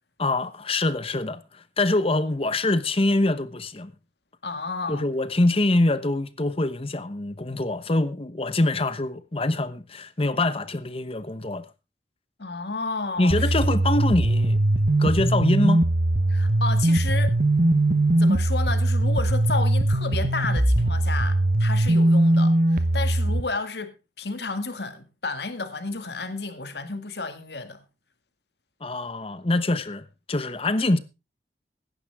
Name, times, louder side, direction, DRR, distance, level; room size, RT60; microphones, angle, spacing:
voice 1, 0.2-3.9 4.9-11.7 13.2-14.6 15.0-15.8 28.8-31.0, left 2 dB, 35° left, 1.0 m, -24 dB
voice 2, 4.4-5.1 12.4-13.5 16.3-17.4 18.2-27.8, left 3 dB, 65° left, 2.1 m, -32 dB
sound 1, 13.3-23.4, right 1 dB, 50° right, 1.2 m, -21 dB
16.5 x 11.5 x 3.6 m
head